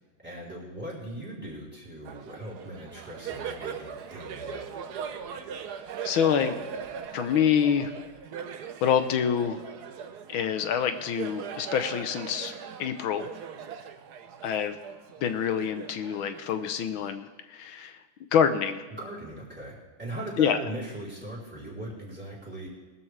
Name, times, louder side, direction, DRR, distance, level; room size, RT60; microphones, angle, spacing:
voice 1, 0.2-4.8 18.9-22.7, right 1 dB, 5° right, -6 dB, 4.2 m, -39 dB
Laughter, 2.0-17.0, right 7 dB, 60° right, 1.2 m, -40 dB
voice 2, 6.0-6.6 7.1-7.9 8.8-9.6 10.3-12.5 12.8-13.3 14.4-14.8 15.2-18.0 18.3-18.8 20.4-20.6, left 8 dB, 85° left, 9 dB, 1.7 m, -26 dB
20.0 x 13.0 x 3.4 m, 1.4 s
omnidirectional pair, 2.2 m